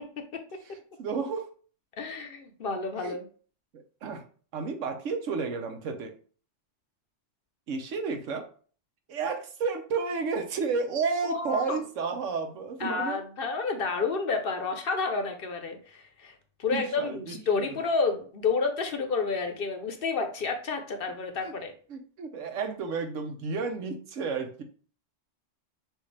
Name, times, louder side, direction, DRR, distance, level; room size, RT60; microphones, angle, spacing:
voice 1, 1.0-1.5 3.0-3.2 3.7-4.2 4.5-6.1 7.7-8.4 9.1-13.2 16.7-17.6 21.4-21.5 21.9-24.6, right 5 dB, 85° right, 6 dB, 1.1 m, -32 dB
voice 2, 2.0-3.2 11.2-11.8 12.8-21.7, left 4 dB, 55° left, 5 dB, 0.8 m, -30 dB
6.3 x 2.4 x 3.2 m, 0.42 s
omnidirectional pair, 1.3 m